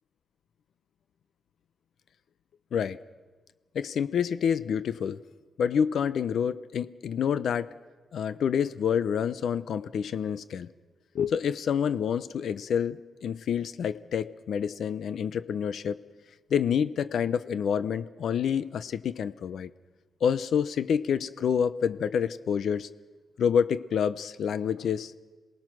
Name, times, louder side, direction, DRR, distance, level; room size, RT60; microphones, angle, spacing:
voice 1, 3.7-5.2 5.6-7.7 8.1-10.7 11.1-16.0 16.5-19.7 20.2-22.9 23.4-25.1, left 7 dB, 65° left, 14 dB, 0.6 m, -28 dB
27.5 x 19.5 x 6.1 m, 1.4 s
wide cardioid pair, 155°, 0 cm